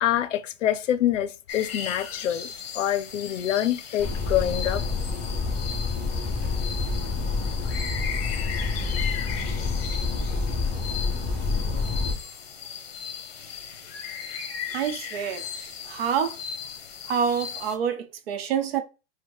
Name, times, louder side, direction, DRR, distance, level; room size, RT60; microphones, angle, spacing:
voice 1, 0.0-4.8, left 11 dB, 85° left, 0.6 m, -26 dB
sound 1, 1.5-17.8, left 7 dB, 55° left, 0.9 m, -37 dB
sound 2, 4.0-12.1, left 4 dB, ahead, 0.7 m, -28 dB
voice 2, 14.7-15.5 15.9-16.4 17.1-18.8, right 7 dB, 55° right, 0.7 m, -27 dB
4.3 x 2.2 x 4.6 m
hypercardioid pair, 170°, 36 cm